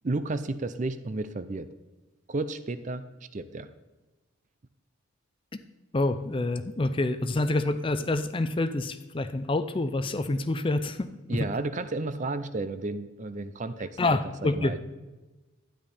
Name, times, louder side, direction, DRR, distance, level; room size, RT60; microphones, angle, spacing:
voice 1, 0.0-1.7 2.3-3.1 3.3-3.7 11.3-14.8, right 2 dB, 35° right, 12 dB, 0.5 m, -32 dB
voice 2, 5.9-11.5 14.0-14.9, left 2 dB, 25° left, 11 dB, 0.4 m, -27 dB
12.5 x 10.0 x 4.2 m, 1.2 s
head